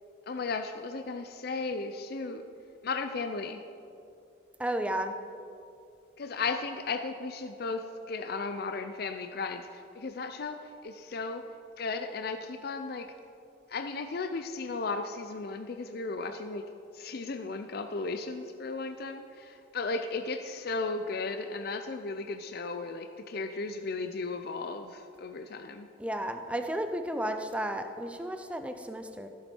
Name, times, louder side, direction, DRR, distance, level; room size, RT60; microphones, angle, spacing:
voice 1, 0.3-2.4 2.8-3.6 6.2-11.4 11.8-13.1 13.7-16.6 16.9-25.9, left 3 dB, 55° left, 7 dB, 0.5 m, -35 dB
voice 2, 4.6-5.1 26.0-29.3, right 1 dB, 5° right, 7 dB, 0.5 m, -33 dB
15.0 x 7.2 x 4.4 m, 2.5 s
head